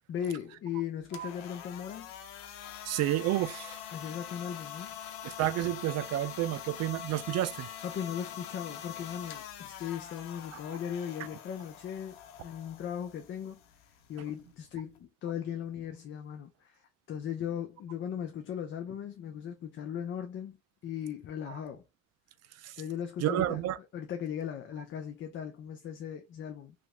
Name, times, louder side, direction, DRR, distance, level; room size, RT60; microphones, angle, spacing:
voice 1, 0.1-2.1 3.9-4.9 7.8-13.6 14.1-16.8 17.1-21.8 22.8-23.6 23.9-26.7, left 9 dB, 40° left, 0.5 m, -38 dB
sound 1, 1.0-15.0, left 9 dB, 85° left, 0.7 m, -45 dB
voice 2, 2.8-3.8 5.2-7.7 10.7-10.8 21.5-21.6 22.6-22.8 23.2-23.8, right 14 dB, 55° right, 0.4 m, -30 dB
3.0 x 2.5 x 3.0 m
cardioid pair, 125°, 32 cm